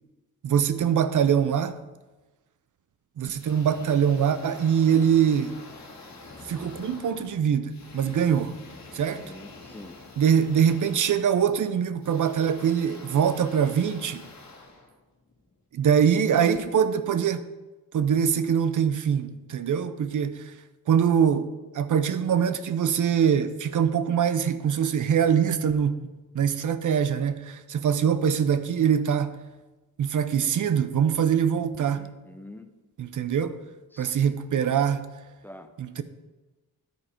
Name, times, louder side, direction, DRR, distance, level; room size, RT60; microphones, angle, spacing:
voice 1, 0.4-1.7 3.2-5.6 6.5-8.6 8.9-9.2 10.2-14.3 15.7-17.4 17.9-20.5 20.9-29.4 30.0-32.1 33.0-33.6 34.0-35.1 35.8-36.0, right 8 dB, 55° right, 0.7 m, -23 dB
sound 1, 3.3-15.5, left 3 dB, 50° left, 1.7 m, -47 dB
voice 2, 9.1-10.0 31.9-32.7 33.9-34.3 35.4-35.7 36.0-36.1, left 1 dB, 5° left, 0.7 m, -46 dB
10.5 x 4.8 x 4.4 m
cardioid pair, 85°, 37 cm